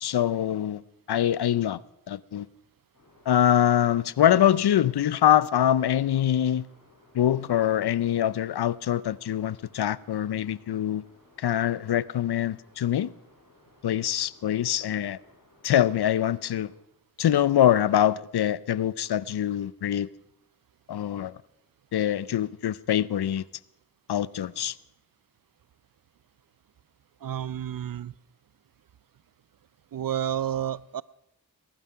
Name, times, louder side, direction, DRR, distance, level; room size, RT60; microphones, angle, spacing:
voice 1, 0.0-1.8 2.1-2.5 3.3-6.6 7.1-11.0 11.4-13.1 13.8-15.2 15.6-16.7 17.2-20.1 20.9-21.4 21.9-23.5 24.1-24.8, left 11 dB, 90° left, 0.5 m, -24 dB
sound 1, 2.9-16.7, left 2 dB, 50° left, 6.7 m, -59 dB
voice 2, 27.2-28.1 29.9-31.0, right 10 dB, 60° right, 0.5 m, -30 dB
20.5 x 11.5 x 5.6 m
cardioid pair, 55°, 38 cm